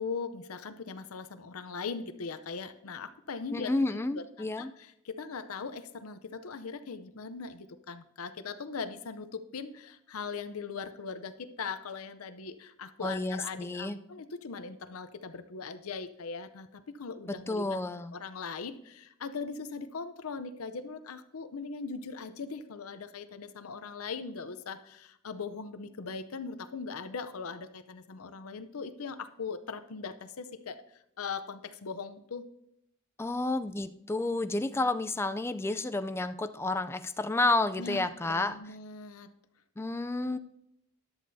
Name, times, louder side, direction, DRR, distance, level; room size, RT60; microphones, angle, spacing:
voice 1, 0.0-3.9 4.1-17.8 18.1-30.8 31.2-32.4 37.8-39.3, left 5 dB, 90° left, 11 dB, 0.7 m, -40 dB
voice 2, 3.5-4.7 13.0-14.0 17.5-18.1 33.2-38.6 39.8-40.4, left 2 dB, 10° left, 10 dB, 0.3 m, -30 dB
14.0 x 10.5 x 2.7 m, 0.77 s
head